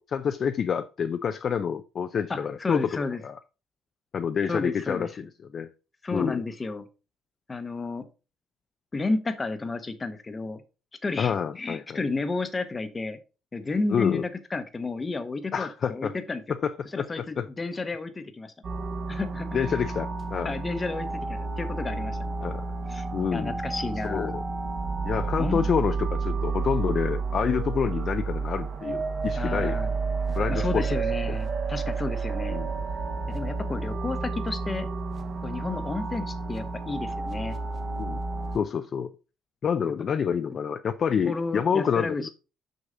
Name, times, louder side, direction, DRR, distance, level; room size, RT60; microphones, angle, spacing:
voice 1, 0.0-3.4 4.1-5.2 5.5-5.7 6.1-6.4 11.2-12.0 13.9-14.2 15.5-16.2 16.5-17.5 19.5-20.5 22.4-22.6 23.1-23.5 24.0-24.4 25.0-29.8 30.3-30.8 31.3-31.4 32.5-32.7 38.0-38.2 38.5-39.1 39.6-42.3, left 7 dB, 40° left, 9 dB, 0.4 m, -28 dB
voice 2, 2.3-3.2 4.5-5.1 6.0-6.9 7.5-8.0 8.9-10.6 11.0-13.2 13.5-16.4 16.9-18.5 19.1-19.6 20.4-22.3 22.9-23.1 23.3-24.3 25.4-25.7 29.3-29.9 30.5-32.6 33.3-34.9 35.4-37.6 41.3-42.3, left 3 dB, 20° left, 9 dB, 0.9 m, -32 dB
sound 1, 18.6-38.6, right 4 dB, 35° right, 1.0 m, -30 dB
6.5 x 6.2 x 3.9 m, 0.31 s
cardioid pair, 155°, 0 cm